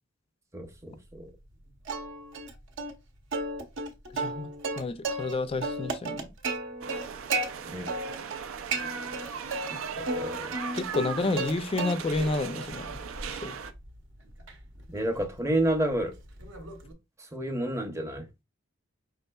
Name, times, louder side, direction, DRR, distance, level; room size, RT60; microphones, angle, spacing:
voice 1, 0.5-1.3 7.7-7.9 10.0-10.6 14.9-16.1 17.3-18.3, right 1 dB, 15° right, 0.7 m, -30 dB
Plucked string instrument, 1.9-2.5 2.8-2.9 3.3-5.3 5.6-7.5 7.9-8.4 8.7-9.7 10.1-11.5 11.8-12.3 12.7-16.9, right 3 dB, 65° right, 0.8 m, -33 dB
voice 2, 4.1-4.5 4.8-6.3 10.7-13.0 13.3-13.5, left 3 dB, 30° left, 0.4 m, -30 dB
sound 1, 6.8-13.7, right 6 dB, 85° right, 0.5 m, -38 dB
5.4 x 3.6 x 2.2 m
head